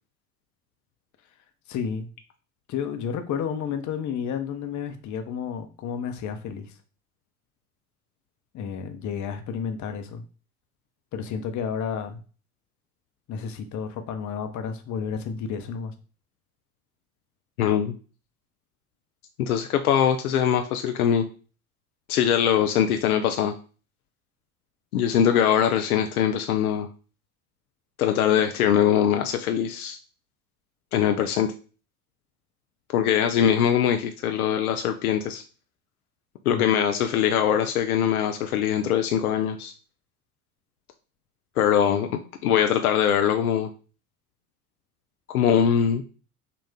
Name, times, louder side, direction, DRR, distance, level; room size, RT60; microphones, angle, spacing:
voice 1, 1.7-2.1 2.7-6.8 8.5-10.2 11.1-12.2 13.3-15.9 36.5-36.7, left 7 dB, 40° left, 7 dB, 0.8 m, -31 dB
voice 2, 17.6-17.9 19.4-21.2 22.1-23.5 24.9-26.9 28.0-30.0 30.9-31.5 32.9-35.4 36.5-39.7 41.6-42.1 42.4-43.7 45.3-46.0, left 9 dB, 75° left, 6 dB, 0.6 m, -22 dB
5.7 x 2.5 x 3.6 m, 0.37 s
figure-of-eight pair, 65°, 44 cm